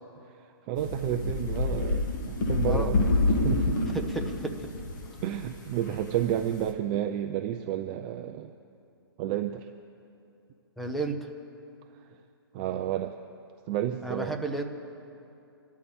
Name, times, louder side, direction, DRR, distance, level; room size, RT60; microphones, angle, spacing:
voice 1, 0.7-3.8 5.2-8.5 9.2-9.7 12.5-13.2 13.7-14.4, right 11 dB, 20° right, 6 dB, 0.4 m, -31 dB
sound 1, 0.8-6.7, left 2 dB, 50° left, 2.1 m, -28 dB
voice 2, 3.9-4.7 10.8-11.2 14.0-14.6, right 2 dB, ahead, 3 dB, 0.7 m, -32 dB
27.5 x 13.0 x 3.5 m, 2.7 s
hypercardioid pair, 160°, 13 cm